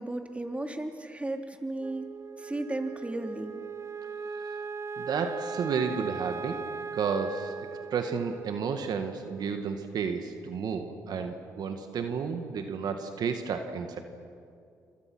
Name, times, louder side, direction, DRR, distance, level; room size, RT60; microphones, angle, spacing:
voice 1, 0.0-2.1 2.4-3.5, right 2 dB, 15° right, 4 dB, 3.2 m, -34 dB
Wind instrument woodwind instrument, 1.8-10.2, right 5 dB, 40° right, 1.0 m, -39 dB
voice 2, 5.0-6.6 6.9-7.5 7.9-14.0, right 6 dB, 65° right, 6 dB, 1.8 m, -32 dB
28.0 x 26.0 x 6.1 m, 2.4 s
supercardioid pair, 55°, 7 cm